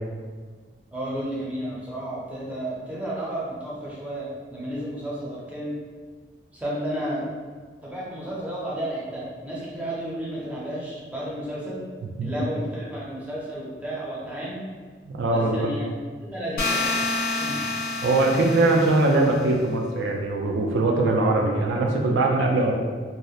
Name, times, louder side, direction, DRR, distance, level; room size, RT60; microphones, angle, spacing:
voice 1, 0.9-5.7 6.5-7.3 7.8-11.8 12.2-14.6 15.3-15.9 16.3-16.9 17.4-17.7, right 1 dB, 10° right, -7 dB, 0.5 m, -32 dB
voice 2, 15.2-15.7 18.0-22.7, right 2 dB, 90° right, 1 dB, 0.3 m, -21 dB
sound 1, 16.6-19.5, left 3 dB, 55° left, 0.4 m, -28 dB
2.6 x 2.0 x 2.3 m, 1.5 s
head